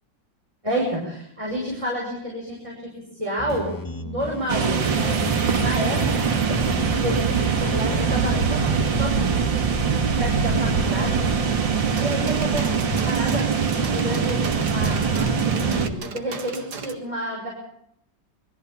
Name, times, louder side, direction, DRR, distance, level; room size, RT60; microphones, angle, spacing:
voice 1, 0.6-3.7 4.0-5.2 5.6-6.3 6.9-9.4 10.2-11.3 12.0-12.7 13.0-13.5 13.9-17.5, equal, 15° right, -2 dB, 5.9 m, -30 dB
sound 1, 3.4-8.4, left 1 dB, 15° left, 1.1 m, -34 dB
sound 2, 4.5-15.9, right 5 dB, 80° right, 2.7 m, -22 dB
sound 3, 11.9-16.9, right 5 dB, 60° right, 2.3 m, -37 dB
23.0 x 14.5 x 8.4 m, 0.74 s
omnidirectional pair, 2.0 m